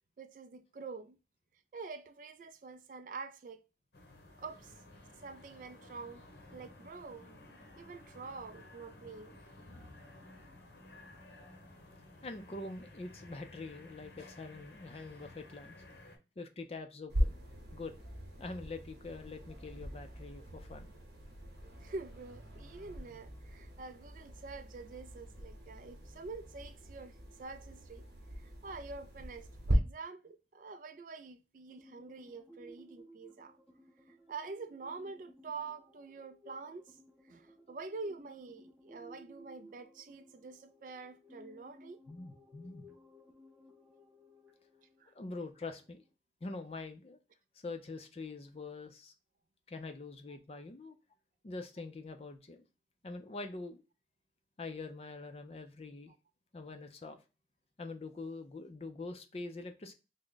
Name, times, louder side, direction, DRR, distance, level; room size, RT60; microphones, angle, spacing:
voice 1, 0.2-1.2 1.7-3.6 4.4-4.8 5.2-6.2 6.5-7.3 7.8-9.4 21.8-28.1 28.4-33.5 34.1-37.0 37.2-42.0 45.0-45.1 50.5-50.6, right 4 dB, 45° right, 0.3 m, -46 dB
sound 1, 3.9-16.2, left 2 dB, 80° left, 0.9 m, -55 dB
voice 2, 12.2-15.8 16.4-17.4 17.7-17.9 18.4-20.9 42.1-43.0 45.1-46.0 46.4-47.2 47.5-49.1 49.7-51.0 51.4-52.7 53.0-53.8 54.6-56.1 56.5-57.2 57.8-59.9, left 3 dB, 35° left, 0.4 m, -44 dB
sound 2, 17.1-29.8, equal, 80° right, 0.9 m, -40 dB
sound 3, 31.7-46.1, equal, 10° right, 0.6 m, -59 dB
3.5 x 2.1 x 3.7 m
head